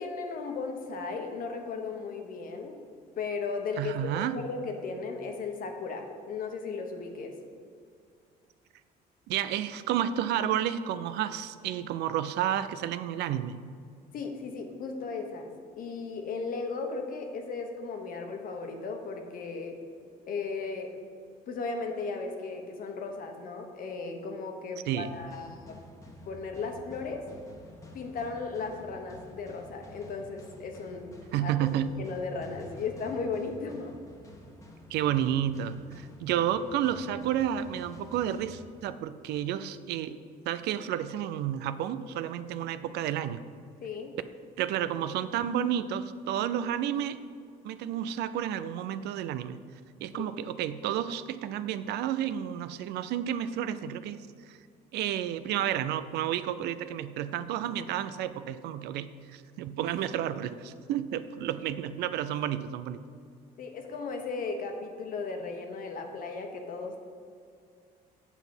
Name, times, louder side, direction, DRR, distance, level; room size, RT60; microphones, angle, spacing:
voice 1, 0.0-2.8 3.2-7.3 14.1-15.5 15.8-19.8 20.3-21.0 21.5-25.8 26.3-27.2 27.9-31.1 31.4-31.5 32.0-33.9 43.8-44.1 50.1-50.3 63.6-67.0, left 4 dB, 55° left, 4 dB, 1.2 m, -36 dB
voice 2, 3.8-4.3 9.3-13.5 24.9-25.1 31.3-31.9 34.9-40.2 40.5-43.4 44.6-47.2 47.6-49.6 50.0-54.2 54.5-54.6 54.9-59.1 59.3-63.0, right 10 dB, 80° right, 13 dB, 0.5 m, -31 dB
sound 1, 25.0-39.2, left 1 dB, 20° left, 1.2 m, -50 dB
8.9 x 4.1 x 7.2 m, 2.3 s
cardioid pair, 110°, 17 cm